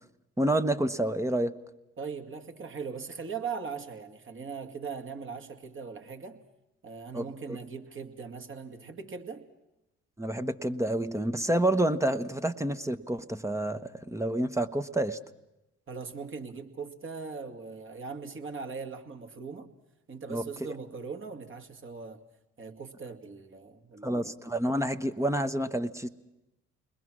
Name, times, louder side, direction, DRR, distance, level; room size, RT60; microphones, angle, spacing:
voice 1, 0.4-1.5 7.1-7.3 10.2-13.8 14.1-15.2 20.3-20.4 24.0-26.1, right 1 dB, 10° right, 1.1 m, -28 dB
voice 2, 2.0-6.4 6.8-9.5 15.9-19.7 20.1-22.2 22.6-24.4, right 5 dB, 40° right, 2.3 m, -40 dB
29.5 x 21.0 x 6.3 m
hypercardioid pair, 55°, 33 cm